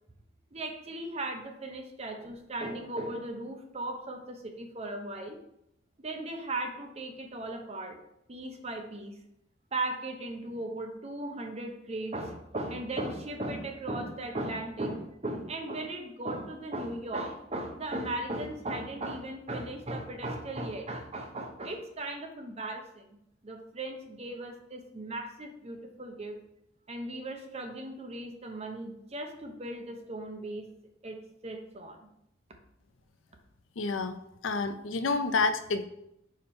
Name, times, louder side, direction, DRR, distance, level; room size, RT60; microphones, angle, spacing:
voice 1, 0.5-5.4 6.0-8.0 8.3-9.2 9.7-23.0 23.4-26.4 26.9-30.7 31.0-32.0, right 2 dB, 35° right, 3 dB, 0.8 m, -37 dB
voice 2, 33.8-34.2 34.4-35.8, left 3 dB, 80° left, 9 dB, 0.5 m, -28 dB
5.0 x 4.4 x 4.3 m, 0.77 s
head